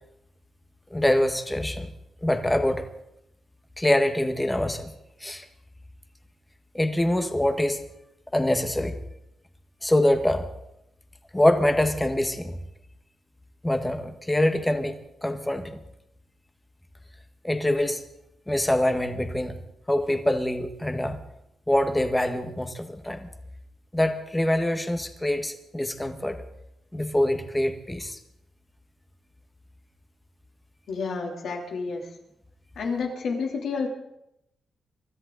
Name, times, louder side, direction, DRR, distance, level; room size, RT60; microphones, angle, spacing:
voice 1, 0.9-1.9 2.2-2.9 3.8-4.9 5.2-5.5 6.7-7.8 8.3-9.0 9.8-10.5 11.3-12.6 13.6-15.0 15.2-15.8 17.4-18.0 18.5-19.6 19.9-21.2 21.7-23.3 23.9-26.4 26.9-28.2, left 1 dB, 10° left, 7 dB, 1.4 m, -24 dB
voice 2, 30.9-32.0 32.8-33.9, left 4 dB, 75° left, 1 dB, 3.2 m, -30 dB
24.5 x 13.5 x 4.0 m, 0.82 s
cardioid pair, 120°, 0 cm